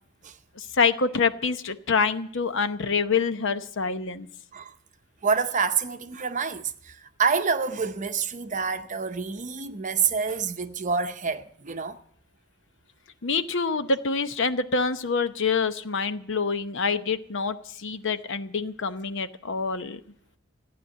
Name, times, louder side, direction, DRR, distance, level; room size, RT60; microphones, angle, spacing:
voice 1, 0.6-4.3 13.2-20.0, left 5 dB, 65° left, 0.8 m, -26 dB
voice 2, 5.2-12.0, right 5 dB, 40° right, 0.7 m, -27 dB
15.5 x 9.5 x 7.4 m
head